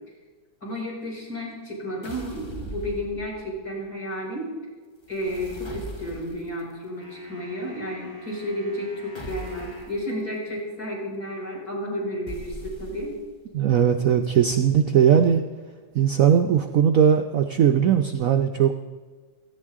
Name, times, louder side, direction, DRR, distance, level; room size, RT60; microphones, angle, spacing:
voice 1, 0.6-4.5 5.1-13.2, equal, 45° left, -4 dB, 5.5 m, -32 dB
sound 1, 2.0-3.6 5.1-6.6 9.1-10.0 12.3-13.4, right 2 dB, 25° left, 0.6 m, -39 dB
sound 2, 7.0-10.0, left 1 dB, 75° left, 6.7 m, -47 dB
voice 2, 13.5-15.4 15.9-18.8, right 8 dB, 80° right, 5 dB, 0.7 m, -19 dB
17.0 x 14.5 x 3.7 m, 1.4 s
omnidirectional pair, 2.3 m